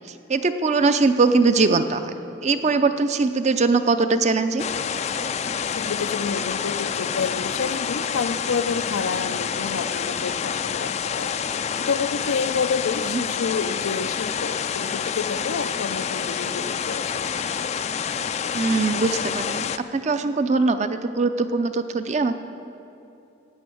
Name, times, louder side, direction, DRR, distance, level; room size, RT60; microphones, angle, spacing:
voice 1, 0.3-2.1 2.4-4.6 13.1-13.2 18.5-19.6 19.9-22.4, right 3 dB, 35° right, 9 dB, 0.5 m, -21 dB
sound 1, 4.6-19.8, left 7 dB, 35° left, 0.3 m, -28 dB
voice 2, 5.7-17.3, left 5 dB, 90° left, 11 dB, 0.5 m, -29 dB
15.0 x 6.2 x 9.2 m, 2.8 s
head